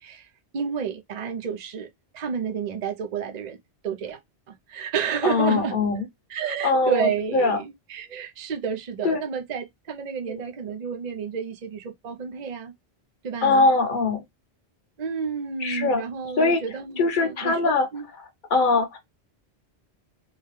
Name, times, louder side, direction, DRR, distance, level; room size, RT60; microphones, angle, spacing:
voice 1, 0.5-1.9 2.1-3.6 3.8-4.2 4.5-5.8 6.3-12.7 13.2-13.7 15.0-18.1, right 6 dB, 45° right, 0.7 m, -30 dB
voice 2, 5.2-6.1 6.6-7.6 9.0-9.2 10.3-10.4 13.4-14.2 15.6-16.0 16.4-16.6 17.0-17.9 18.5-19.0, left 3 dB, 50° left, 1.1 m, -22 dB
3.6 x 2.2 x 3.1 m
omnidirectional pair, 1.1 m